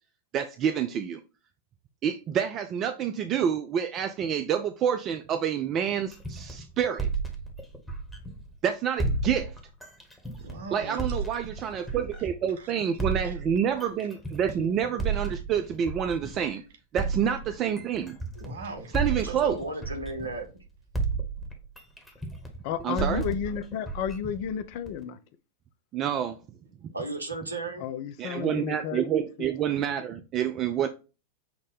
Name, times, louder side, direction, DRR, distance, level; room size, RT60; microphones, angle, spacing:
voice 1, 0.3-1.2 2.0-7.1 8.6-9.5 10.7-16.6 16.9-18.2 18.9-19.6 22.8-23.2 25.9-26.4 28.2-30.9, right 8 dB, 30° right, 0.3 m, -28 dB
sound 1, 6.1-8.5 9.0-12.5 13.0-16.5 17.0-20.6 20.9-25.0, right 4 dB, 5° left, 1.0 m, -33 dB
voice 2, 10.4-11.2 12.6-12.7 13.2-13.3 18.3-18.9, right 4 dB, 55° right, 1.2 m, -41 dB
voice 3, 19.2-20.5 26.9-27.8, right 2 dB, 80° right, 0.7 m, -34 dB
voice 4, 22.6-25.2 27.8-29.0 29.4-29.5, left 8 dB, 45° left, 0.4 m, -32 dB
5.8 x 2.1 x 3.5 m
figure-of-eight pair, 90°, 0 cm